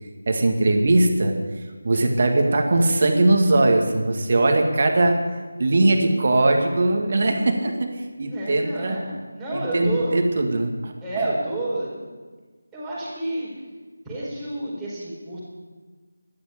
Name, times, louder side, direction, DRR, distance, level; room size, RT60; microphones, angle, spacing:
voice 1, 0.3-1.3 1.8-5.2 5.6-7.9 8.2-9.0 9.7-10.9, right 2 dB, 45° right, 3 dB, 2.0 m, -20 dB
voice 2, 8.2-10.1 11.0-12.1 12.7-13.5 14.0-15.4, right 1 dB, 5° right, -9 dB, 4.3 m, -29 dB
12.5 x 11.5 x 7.4 m, 1.4 s
figure-of-eight pair, 160°, 0 cm